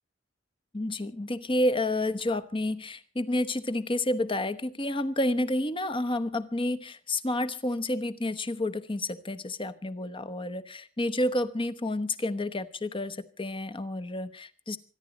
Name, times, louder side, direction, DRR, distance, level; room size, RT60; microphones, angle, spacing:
voice 1, 0.7-14.8, left 1 dB, 30° left, 11 dB, 1.0 m, -30 dB
26.5 x 10.5 x 4.1 m, 0.36 s
head